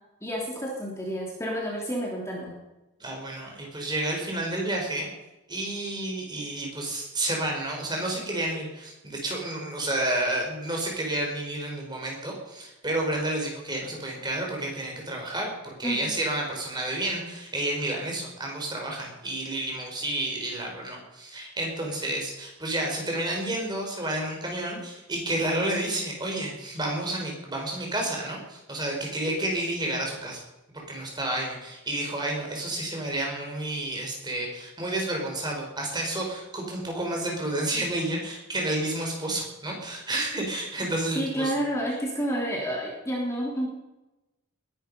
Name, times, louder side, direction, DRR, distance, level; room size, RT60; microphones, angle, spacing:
voice 1, 0.2-2.6 15.8-16.1 41.1-43.7, equal, 10° left, -3 dB, 3.2 m, -30 dB
voice 2, 3.0-5.1 5.5-30.4 30.7-41.6, right 1 dB, 20° right, 0 dB, 4.5 m, -30 dB
20.5 x 11.5 x 5.5 m, 1.0 s
head